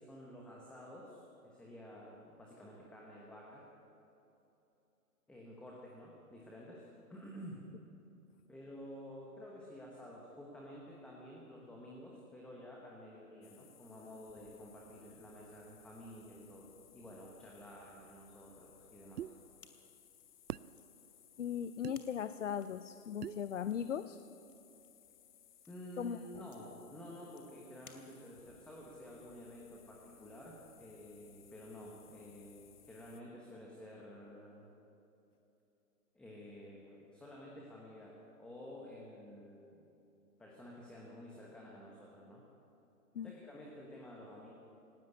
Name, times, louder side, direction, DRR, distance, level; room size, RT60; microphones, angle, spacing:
voice 1, 0.0-3.7 5.3-7.7 8.5-19.3 25.7-34.7 36.1-39.8 40.4-42.4 43.2-44.5, equal, ahead, -3 dB, 1.1 m, -51 dB
sound 1, 13.4-33.2, left 9 dB, 30° left, 1.3 m, -63 dB
sound 2, 19.2-19.4 20.5-20.7 21.8-22.0 23.2-23.4, right 10 dB, 85° right, 0.6 m, -41 dB
sound 3, 19.6-28.6, left 5 dB, 75° left, 2.9 m, -65 dB
voice 2, 21.4-24.2 26.0-26.5 43.1-43.3, left 8 dB, 55° left, 13 dB, 0.7 m, -38 dB
18.0 x 18.0 x 8.5 m, 2.9 s
hypercardioid pair, 150°, 45 cm